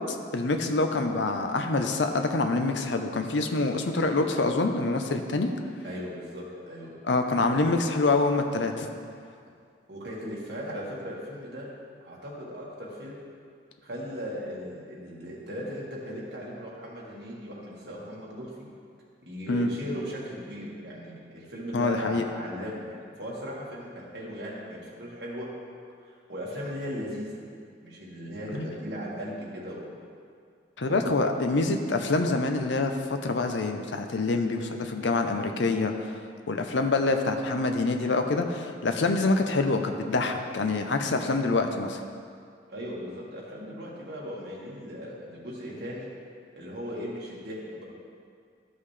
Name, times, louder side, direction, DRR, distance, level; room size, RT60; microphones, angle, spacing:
voice 1, 0.1-5.5 7.1-8.9 19.5-19.7 21.7-22.2 28.5-28.7 30.8-32.9 33.2-36.1 36.5-42.0, left 3 dB, 80° left, 5 dB, 0.6 m, -26 dB
voice 2, 5.8-6.9 9.9-11.7 12.0-13.2 13.8-18.7 19.3-25.5 26.3-27.4 27.8-30.0 30.9-31.1 42.7-46.1 46.6-47.9, equal, 60° right, -5 dB, 1.8 m, -37 dB
12.0 x 5.5 x 3.3 m, 2.2 s
head